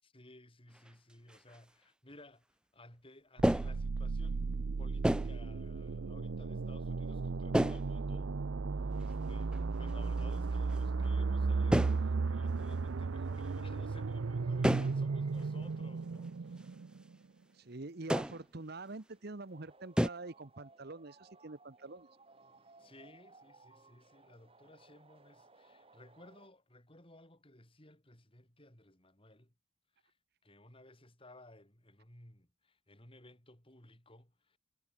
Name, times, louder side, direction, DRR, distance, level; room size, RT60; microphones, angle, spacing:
voice 1, 0.0-2.5 2.7-8.4 8.8-16.8 22.8-29.5 30.0-30.2 30.4-34.6, left 1 dB, 25° left, 4.6 m, -58 dB
sound 1, 0.7-0.9 1.3-1.6 3.4-3.9 5.0-5.4 7.5-7.9 9.0-9.1 9.5-9.9 10.2-10.4 10.7-11.1 11.7-12.0 14.6-15.0 15.4-15.5 16.1-16.2 18.1-18.4 20.0-20.1, equal, 5° right, 0.4 m, -30 dB
sound 2, 3.4-17.2, right 4 dB, 75° right, 0.6 m, -35 dB
sound 3, 8.8-26.5, right 3 dB, 30° right, 4.7 m, -65 dB
voice 2, 17.5-22.1, right 3 dB, 50° right, 1.1 m, -46 dB
head